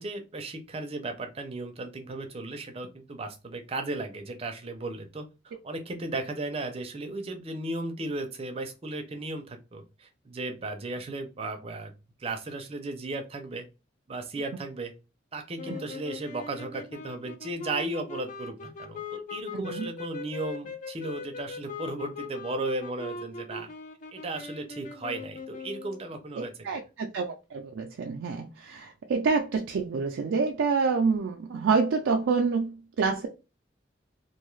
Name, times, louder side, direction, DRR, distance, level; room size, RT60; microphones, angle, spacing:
voice 1, 0.0-11.9 12.2-13.6 14.1-14.9 15.3-23.7 24.1-26.5, right 2 dB, 30° right, 0.5 m, -35 dB
sound 1, 15.6-26.1, left 4 dB, 40° left, 0.3 m, -40 dB
voice 2, 19.5-19.9 26.4-33.3, right 4 dB, 90° right, 0.4 m, -27 dB
2.6 x 2.3 x 3.0 m
head